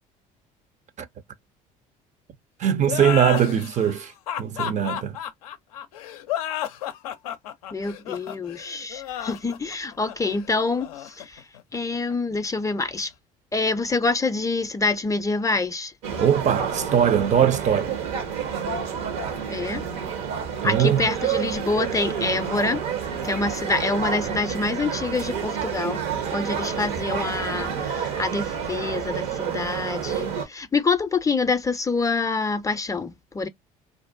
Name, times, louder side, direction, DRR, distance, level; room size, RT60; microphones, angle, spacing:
voice 1, 2.6-4.1 4.4-5.2 16.2-17.9 20.6-21.0, right 9 dB, 40° right, 0.4 m, -21 dB
sound 1, 2.9-12.1, left 11 dB, 85° left, 0.4 m, -32 dB
voice 2, 7.7-11.4 11.7-13.1 13.5-15.9 19.5-19.8 20.6-22.8 23.2-26.0 26.3-33.5, left 3 dB, 20° left, 0.4 m, -26 dB
sound 2, 16.0-30.5, right 7 dB, 75° right, 0.8 m, -29 dB
2.5 x 2.1 x 2.5 m
hypercardioid pair, 65°, 18 cm